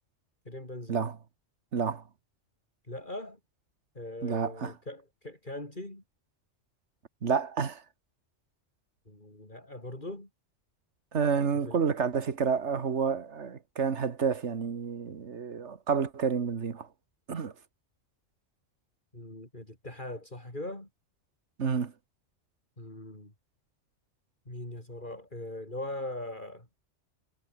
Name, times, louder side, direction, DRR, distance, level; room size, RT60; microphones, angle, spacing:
voice 1, 0.4-1.1 2.8-3.4 3.9-6.0 9.1-10.3 11.6-11.8 19.1-20.9 22.8-23.3 24.5-26.7, left 1 dB, 40° left, 6.1 m, -40 dB
voice 2, 1.7-2.0 4.2-4.7 7.2-7.8 11.1-16.9 17.3-17.5 21.6-21.9, right 6 dB, 65° right, 1.8 m, -29 dB
omnidirectional pair, 1.3 m